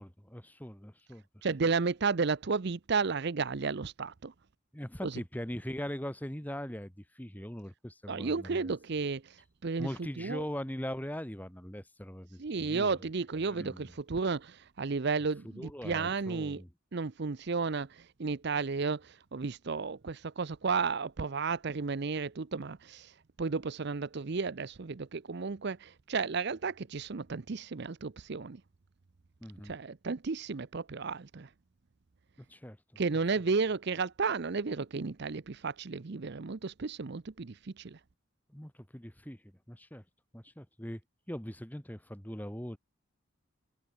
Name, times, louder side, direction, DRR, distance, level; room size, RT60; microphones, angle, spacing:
voice 1, 0.0-1.2 4.7-8.7 9.8-13.0 13.5-13.9 15.4-16.7 29.4-29.7 32.5-33.0 38.5-40.0 40.3-41.0 41.3-42.8, equal, 10° left, 1.7 m, -41 dB
voice 2, 1.4-4.3 5.0-5.1 8.1-9.3 9.6-9.9 10.2-10.4 12.4-16.6 16.9-23.1 23.4-28.6 29.6-31.5 33.0-38.0, right 4 dB, 50° right, 0.6 m, -33 dB
head